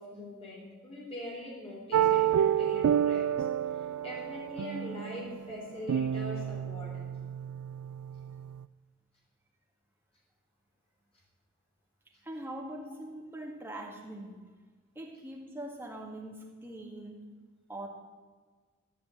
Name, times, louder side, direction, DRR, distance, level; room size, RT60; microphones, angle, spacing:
voice 1, 0.0-3.3 3.8-7.0, left 1 dB, 25° left, -4 dB, 4.0 m, -42 dB
sound 1, 1.9-8.6, right 9 dB, 80° right, 0.3 m, -29 dB
voice 2, 12.2-14.4 15.0-17.2 17.7-17.9, right 1 dB, 10° right, -2 dB, 2.0 m, -42 dB
13.0 x 5.5 x 9.3 m, 1.4 s
head